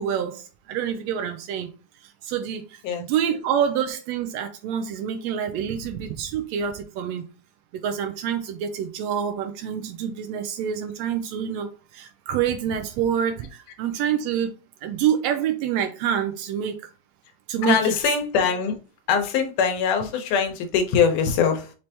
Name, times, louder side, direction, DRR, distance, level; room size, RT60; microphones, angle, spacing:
voice 1, 0.0-1.7 2.0-7.3 7.7-14.5 14.8-16.9 17.5-17.9, right 8 dB, 80° right, 1.6 m, -27 dB
voice 2, 17.6-18.8 19.1-21.7, left 6 dB, 90° left, 2.4 m, -22 dB
5.9 x 3.3 x 2.8 m
omnidirectional pair, 3.5 m